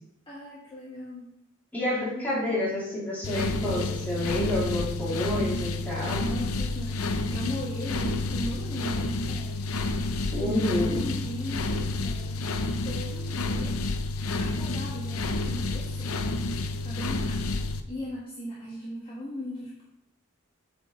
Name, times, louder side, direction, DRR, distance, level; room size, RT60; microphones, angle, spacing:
voice 1, 0.3-1.2 6.2-9.9 10.4-12.4 12.8-13.8 14.4-16.1 16.8-19.8, equal, 25° left, -8 dB, 1.7 m, -38 dB
voice 2, 1.7-6.3 10.3-11.1, left 1 dB, 10° left, -8 dB, 2.8 m, -29 dB
sound 1, 3.2-17.8, left 2 dB, 80° left, 0.6 m, -30 dB
8.2 x 5.2 x 3.9 m, 0.76 s
head